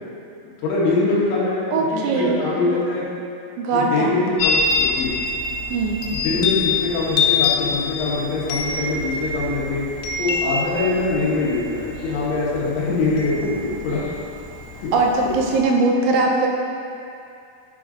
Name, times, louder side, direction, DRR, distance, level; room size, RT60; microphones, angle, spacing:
voice 1, 0.6-1.6 1.9-3.0 3.7-5.1 6.1-9.8 10.2-14.0 14.8-14.9, left 3 dB, 75° left, -6 dB, 3.4 m, -23 dB
voice 2, 1.7-2.4 3.6-4.2 5.7-6.0 14.9-16.5, right 3 dB, 85° right, 0 dB, 3.0 m, -20 dB
Chime, 4.4-15.6, left 4 dB, 90° left, 3.4 m, -26 dB
8.5 x 6.3 x 3.7 m, 2.5 s
omnidirectional pair, 5.5 m